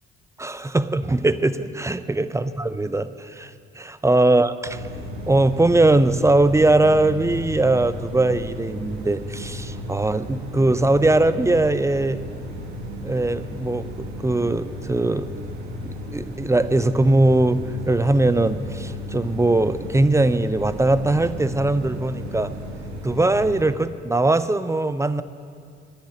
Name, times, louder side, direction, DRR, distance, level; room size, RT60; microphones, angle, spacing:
voice 1, 0.4-4.8 5.3-12.2 13.0-15.3 15.8-17.6 17.9-22.5 23.0-25.2, right 2 dB, 10° right, 13 dB, 0.5 m, -20 dB
sound 1, 4.6-23.7, left 1 dB, 85° right, 1.6 m, -34 dB
10.5 x 10.0 x 8.7 m, 2.3 s
hypercardioid pair, 50°, 31 cm